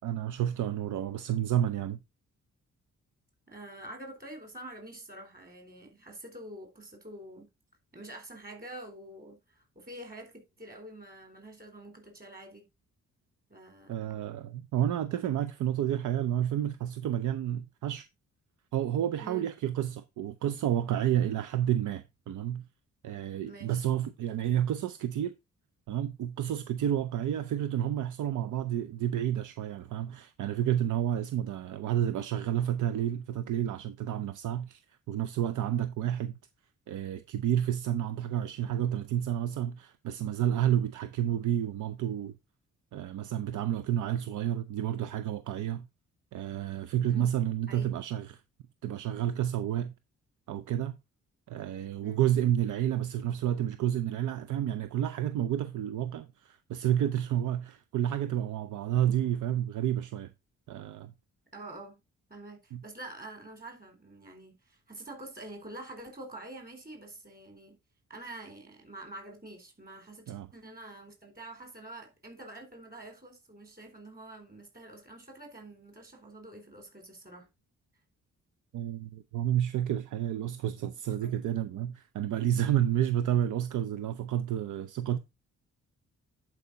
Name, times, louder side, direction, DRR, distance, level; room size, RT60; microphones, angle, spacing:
voice 1, 0.0-2.0 13.9-18.1 18.7-22.7 23.0-25.3 25.9-34.8 35.1-36.3 36.9-42.3 42.9-45.9 46.3-48.4 48.8-49.9 50.5-51.0 51.5-60.3 60.7-61.1 62.7-62.8 70.3-70.5 78.7-85.2, right 11 dB, 90° right, 0.6 m, -30 dB
voice 2, 3.5-7.5 7.9-12.7 13.5-14.0 19.2-19.5 23.4-23.8 47.1-47.3 47.7-47.9 52.0-52.2 61.5-62.0 62.3-67.8 68.1-77.5 81.2-81.4, right 1 dB, 30° right, 3.9 m, -46 dB
10.5 x 4.9 x 4.0 m
cardioid pair, 125°, 29 cm